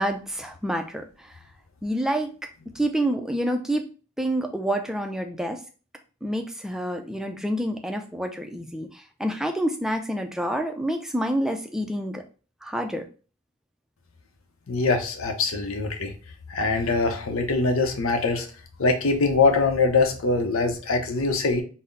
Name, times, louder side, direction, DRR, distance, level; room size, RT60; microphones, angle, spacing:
voice 1, 0.0-1.3 1.8-2.3 2.8-3.9 4.2-5.6 6.2-12.2 12.6-13.1, right 1 dB, ahead, 4 dB, 0.4 m, -28 dB
voice 2, 14.7-16.1 16.5-18.5 18.8-21.6, left 3 dB, 90° left, 5 dB, 0.7 m, -23 dB
4.0 x 2.0 x 3.8 m, 0.36 s
head